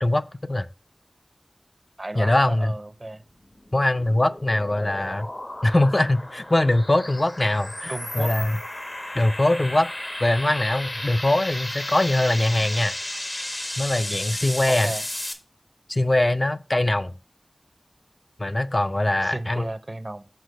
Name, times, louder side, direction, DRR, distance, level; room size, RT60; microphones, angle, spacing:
voice 1, 0.0-0.7 2.2-2.7 3.7-5.3 5.6-8.6 9.1-9.9 10.2-12.9 13.8-14.9 15.9-17.1 18.4-19.7, left 1 dB, 50° left, 0.4 m, -22 dB
voice 2, 2.0-3.2 7.9-8.3 14.7-15.0 19.2-20.3, right 2 dB, 60° right, 0.5 m, -34 dB
sound 1, 3.3-15.3, left 1 dB, 70° left, 1.2 m, -34 dB
6.6 x 4.0 x 5.1 m
wide cardioid pair, 45°, 0 cm